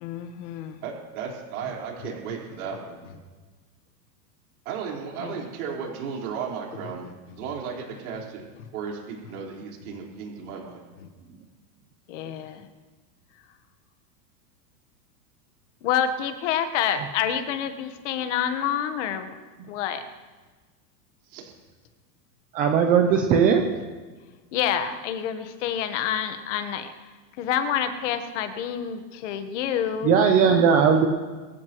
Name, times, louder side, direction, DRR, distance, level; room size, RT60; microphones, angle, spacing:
voice 1, 0.0-0.8 5.2-5.3 6.8-6.9 12.1-12.7 15.8-19.3 19.7-20.0 24.5-26.9 27.4-30.2, left 9 dB, 45° left, 9 dB, 1.4 m, -28 dB
voice 2, 0.8-3.0 4.6-8.4 8.7-10.8 21.3-21.5, right 6 dB, 60° right, -2 dB, 4.5 m, -35 dB
voice 3, 22.5-23.7 30.0-31.1, right 6 dB, 15° right, 5 dB, 0.5 m, -18 dB
23.0 x 15.5 x 3.1 m, 1.3 s
supercardioid pair, 160°, 49 cm